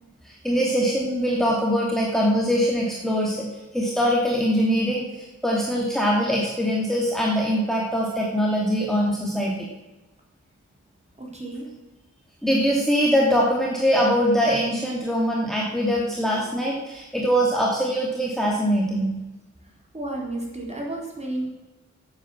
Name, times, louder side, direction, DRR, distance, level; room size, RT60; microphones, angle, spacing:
voice 1, 0.2-3.4 3.7-9.7 12.4-19.1, equal, ahead, -3 dB, 2.5 m, -22 dB
voice 2, 11.2-11.7 19.9-21.5, right 1 dB, 20° right, -2 dB, 4.1 m, -32 dB
10.5 x 8.9 x 7.3 m, 1.1 s
wide cardioid pair, 65°, 29 cm